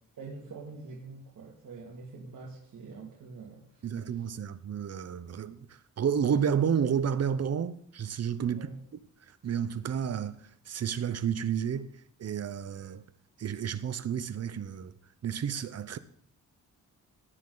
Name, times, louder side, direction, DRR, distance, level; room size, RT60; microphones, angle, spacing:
voice 1, 0.2-4.3 8.5-8.8, right 4 dB, 75° right, 2.5 m, -46 dB
voice 2, 3.8-5.7 6.0-8.7 9.4-10.4 10.7-11.9 12.2-13.0 13.4-14.9 15.2-16.0, right 8 dB, 50° right, 0.8 m, -30 dB
17.5 x 9.6 x 4.0 m
wide cardioid pair, 135°, 33 cm